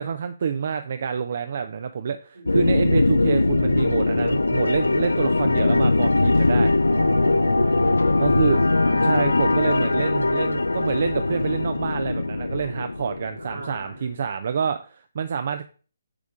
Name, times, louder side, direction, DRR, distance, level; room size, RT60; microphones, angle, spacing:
voice 1, 0.0-6.7 8.2-8.6 9.0-15.6, right 6 dB, 55° right, 10 dB, 0.5 m, -27 dB
voice 2, 2.3-3.2 6.8-9.3 13.4-14.0, right 2 dB, 80° right, -2 dB, 3.3 m, -37 dB
sound 1, 2.5-13.8, left 2 dB, 90° left, 0.3 m, -21 dB
sound 2, 6.3-10.8, left 6 dB, 45° left, 0.6 m, -48 dB
8.2 x 3.6 x 3.7 m, 0.39 s
figure-of-eight pair, 145°, 0 cm